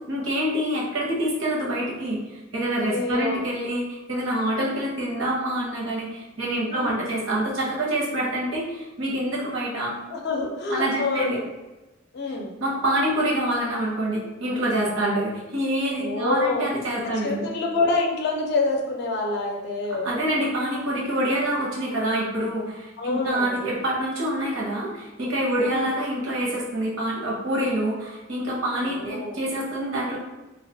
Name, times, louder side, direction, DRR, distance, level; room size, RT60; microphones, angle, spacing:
voice 1, 0.1-2.2 2.5-9.9 10.7-11.4 12.6-17.5 20.0-30.2, right 1 dB, 85° right, -4 dB, 0.8 m, -26 dB
voice 2, 2.8-3.5 6.7-7.0 10.1-11.4 12.1-12.5 16.0-16.6 17.2-20.1 23.0-23.6 25.6-25.9 28.8-29.3, left 3 dB, 55° left, 1 dB, 0.4 m, -27 dB
2.3 x 2.3 x 2.6 m, 1.1 s
head